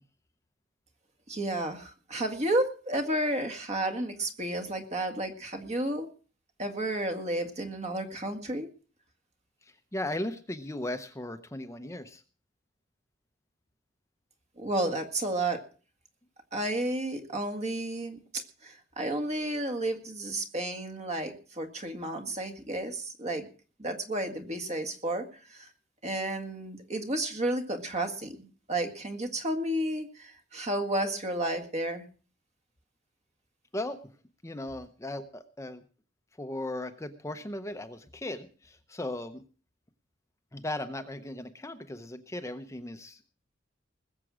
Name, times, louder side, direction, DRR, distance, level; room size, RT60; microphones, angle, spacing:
voice 1, 1.3-6.1 6.6-8.7 14.6-15.6 16.5-18.2 18.6-23.5 23.8-25.7 26.0-32.0, right 1 dB, 35° right, 7 dB, 1.8 m, -32 dB
voice 2, 9.9-12.2 33.7-34.0 34.4-35.8 36.4-39.4 40.5-43.3, left 1 dB, 15° left, 8 dB, 0.8 m, -37 dB
20.0 x 7.5 x 6.2 m, 0.39 s
head